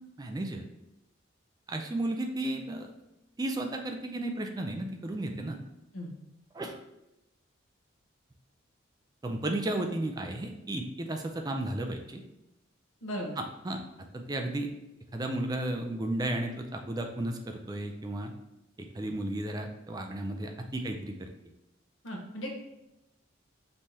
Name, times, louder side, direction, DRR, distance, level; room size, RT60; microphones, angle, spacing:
voice 1, 0.2-0.6 1.7-2.9 3.4-5.6 6.5-6.8 9.2-12.2 13.4-13.8 14.1-14.7 15.1-18.3 18.8-21.3, right 1 dB, 20° right, 4 dB, 0.3 m, -33 dB
voice 2, 13.0-13.4 22.0-22.5, equal, 80° left, -1 dB, 1.0 m, -36 dB
5.3 x 3.1 x 2.8 m, 0.91 s
head